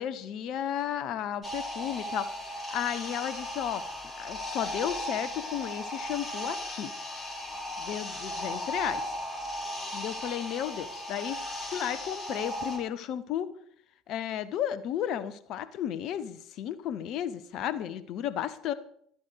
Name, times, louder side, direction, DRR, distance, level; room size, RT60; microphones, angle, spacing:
voice 1, 0.0-3.8 4.2-6.9 7.8-9.2 9.9-11.4 11.7-13.5 14.1-18.7, left 10 dB, 55° left, 15 dB, 1.2 m, -33 dB
sound 1, 1.4-12.8, left 1 dB, 25° left, 5.4 m, -36 dB
14.5 x 13.0 x 4.8 m, 0.65 s
figure-of-eight pair, 60°, 0 cm